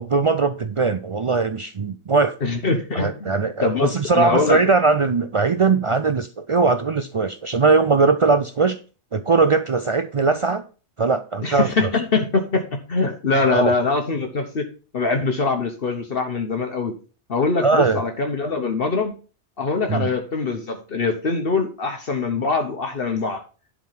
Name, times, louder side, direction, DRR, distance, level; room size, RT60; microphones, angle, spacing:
voice 1, 0.0-2.4 2.9-8.8 9.1-10.6 11.0-11.7 13.4-13.7 17.6-18.0 19.9-20.1, right 4 dB, 60° right, 0.3 m, -20 dB
voice 2, 2.4-3.3 3.6-4.6 11.4-14.7 14.9-16.9 17.3-19.1 19.6-23.4, left 3 dB, 55° left, 1.2 m, -23 dB
10.5 x 3.8 x 5.7 m
omnidirectional pair, 1.2 m